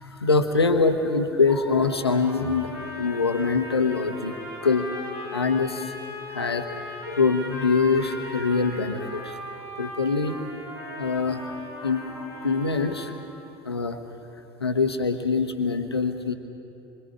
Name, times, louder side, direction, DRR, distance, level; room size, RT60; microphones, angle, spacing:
voice 1, 0.0-4.3 4.6-4.9 5.3-6.0 6.3-9.4 9.8-10.4 11.0-11.5 11.8-13.1 13.6-14.0 14.6-16.3, left 4 dB, 85° left, 7 dB, 1.2 m, -24 dB
sound 1, 1.7-13.4, left 1 dB, 85° right, 6.7 m, -39 dB
25.5 x 25.0 x 4.9 m, 2.8 s
figure-of-eight pair, 70°, 13 cm